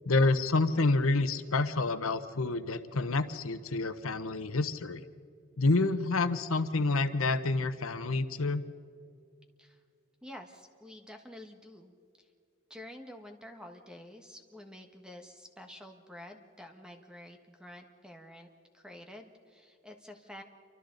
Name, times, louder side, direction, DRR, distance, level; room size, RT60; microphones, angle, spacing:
voice 1, 0.1-5.0 5.6-8.6, left 3 dB, 85° left, 11 dB, 0.9 m, -28 dB
voice 2, 10.2-12.3 12.7-18.5 18.7-20.4, left 1 dB, 5° right, 4 dB, 1.4 m, -49 dB
28.5 x 24.5 x 4.0 m, 2.3 s
head